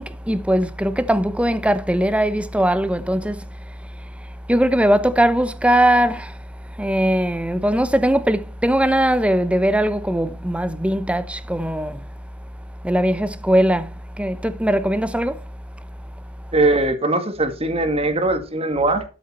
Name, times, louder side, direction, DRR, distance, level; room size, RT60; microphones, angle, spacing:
voice 1, 0.0-3.5 4.5-6.4 6.8-12.0 12.8-13.9 14.2-15.4, right 1 dB, 5° right, 0.9 m, -20 dB
voice 2, 16.5-19.1, right 2 dB, 30° right, 2.1 m, -20 dB
13.0 x 7.3 x 4.5 m
head